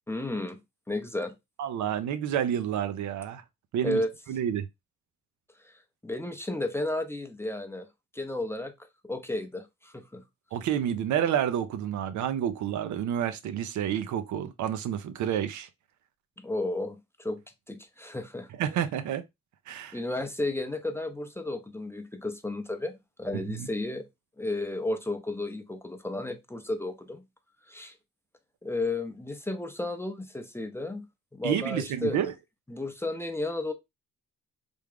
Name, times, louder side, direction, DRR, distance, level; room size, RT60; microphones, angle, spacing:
voice 1, 0.1-0.6 0.9-1.3 3.8-4.1 5.6-5.7 6.0-7.9 8.1-8.7 9.0-10.2 16.4-17.4 17.7-18.5 19.9-24.1 24.4-27.2 27.7-27.9 28.6-31.1 31.3-32.2 32.7-33.7, left 2 dB, 10° left, 0.5 m, -33 dB
voice 2, 1.6-3.4 3.7-4.0 4.3-4.6 10.5-15.7 18.6-19.2 19.7-20.0 23.5-23.7 31.4-32.3, right 9 dB, 70° right, 0.6 m, -29 dB
3.4 x 2.3 x 3.5 m
cardioid pair, 90°, 30 cm